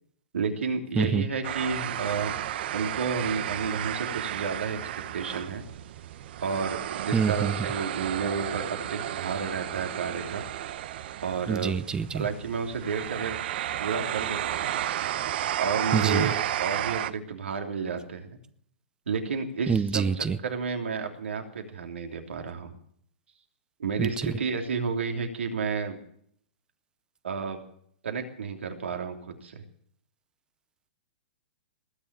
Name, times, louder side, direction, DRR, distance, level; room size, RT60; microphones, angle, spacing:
voice 1, 0.3-2.3 2.7-4.8 5.1-5.6 6.4-10.5 11.2-11.8 12.1-13.4 13.8-14.7 15.6-18.4 19.1-22.7 23.8-26.0 27.2-27.6 28.0-29.6, right 5 dB, 80° right, 4 dB, 3.0 m, -31 dB
sound 1, 1.4-17.1, right 12 dB, 60° right, 0.9 m, -33 dB
voice 2, 7.1-7.5 11.5-12.2 15.9-16.3 19.7-20.4 24.0-24.3, right 6 dB, 10° right, 15 dB, 0.7 m, -26 dB
20.0 x 7.2 x 10.0 m, 0.63 s
hypercardioid pair, 125°, 6 cm